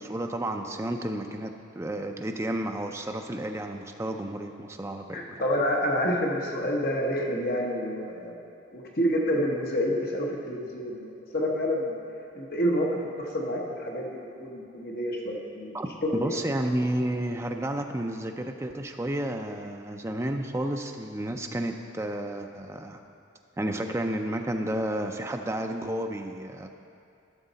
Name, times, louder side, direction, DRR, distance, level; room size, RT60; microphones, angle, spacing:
voice 1, 0.0-5.4 15.7-23.0 23.6-26.7, right 1 dB, 15° right, 4 dB, 0.4 m, -31 dB
voice 2, 5.1-8.3 8.7-12.0 12.3-15.7 16.0-16.4, equal, 45° left, -1 dB, 1.1 m, -28 dB
12.5 x 6.6 x 4.0 m, 2.5 s
head